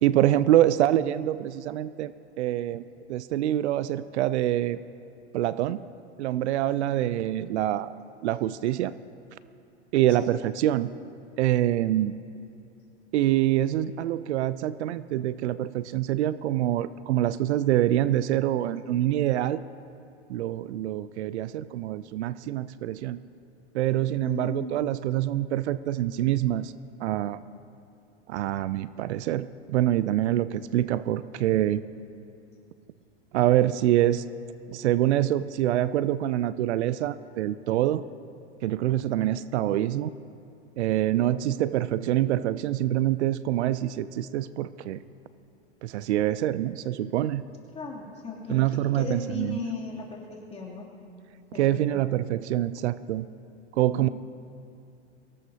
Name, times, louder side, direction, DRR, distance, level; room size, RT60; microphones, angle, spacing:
voice 1, 0.0-2.8 3.1-4.8 5.3-5.8 6.2-7.9 8.2-8.9 9.9-10.9 11.4-12.2 13.1-19.6 20.3-23.2 23.7-26.7 27.0-27.4 28.3-31.8 33.3-34.2 34.7-38.0 38.6-40.1 40.8-45.0 45.8-47.4 48.5-49.6 51.5-53.3 53.8-54.1, right 13 dB, 75° right, 16 dB, 0.6 m, -25 dB
voice 2, 24.2-24.8 47.7-50.9 51.5-52.0 53.9-54.1, left 5 dB, 15° left, -3 dB, 3.0 m, -37 dB
23.0 x 18.0 x 2.9 m, 2.6 s
hypercardioid pair, 120°, 34 cm